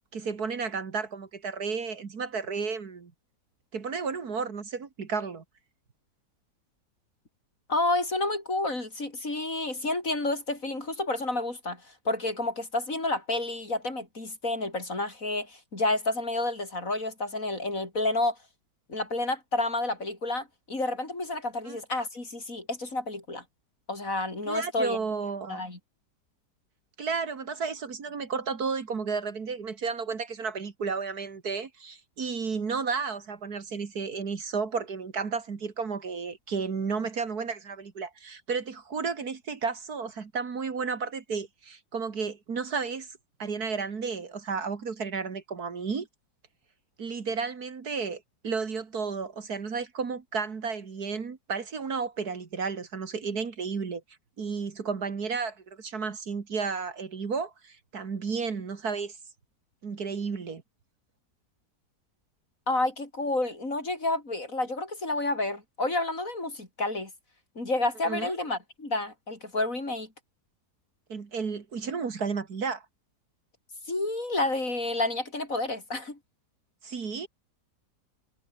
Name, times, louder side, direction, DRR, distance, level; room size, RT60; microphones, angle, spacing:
voice 1, 0.1-3.1 3.7-5.4 21.7-21.8 24.5-25.6 27.0-43.1 43.4-46.1 47.0-54.0 54.4-59.2 59.8-60.6 68.1-68.3 71.1-72.9 76.8-77.3, right 5 dB, 60° right, 2.5 m, -32 dB
voice 2, 7.7-18.4 18.9-23.4 23.9-25.0 25.5-25.8 62.7-67.1 67.6-70.1 73.9-76.2, left 2 dB, 50° left, 5.6 m, -30 dB
omnidirectional pair, 1.8 m